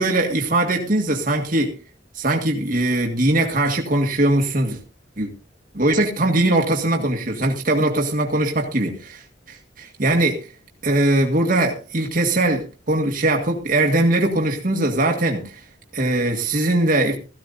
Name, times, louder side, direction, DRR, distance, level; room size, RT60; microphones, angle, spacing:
voice 1, 0.0-1.8 2.2-4.8 5.2-5.3 5.7-10.5 10.8-15.6 15.9-17.2, right 1 dB, 45° right, 1.9 m, -21 dB
17.0 x 14.5 x 2.6 m
head